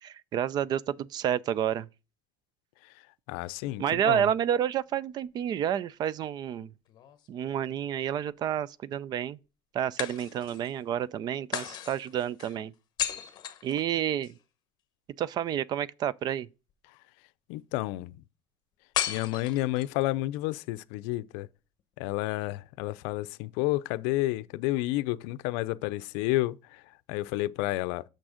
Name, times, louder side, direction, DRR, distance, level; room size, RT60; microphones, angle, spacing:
voice 1, 0.0-1.9 3.8-6.7 7.3-9.4 9.7-12.7 13.6-14.3 15.2-16.5, right 10 dB, 35° right, 0.4 m, -29 dB
voice 2, 3.3-4.3 17.5-18.2 19.1-21.5 22.0-26.8 27.1-28.0, left 17 dB, 80° left, 0.5 m, -30 dB
sound 1, 6.9-7.9 10.0-10.7 11.5-14.4 18.9-20.0, left 10 dB, 40° left, 1.0 m, -36 dB
6.6 x 6.2 x 4.9 m
cardioid pair, 150°, 12 cm